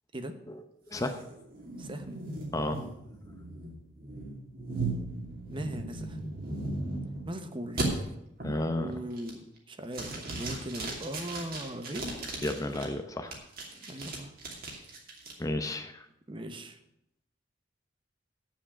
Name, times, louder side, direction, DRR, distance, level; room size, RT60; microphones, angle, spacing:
voice 1, 0.9-1.2 2.5-2.9 8.4-8.9 12.4-13.3 15.4-16.0, left 1 dB, 20° left, 7 dB, 0.7 m, -32 dB
sound 1, 0.9-7.3 7.8-7.9 8.4-8.7 9.1-9.6 9.9-12.8 13.3-15.3, right 2 dB, 55° right, 2.6 m, -37 dB
voice 2, 1.8-2.2 5.5-6.2 7.2-8.1 8.8-12.2 13.9-14.3 16.3-16.8, right 1 dB, 25° right, 8 dB, 0.9 m, -39 dB
8.2 x 7.3 x 8.5 m, 0.81 s
head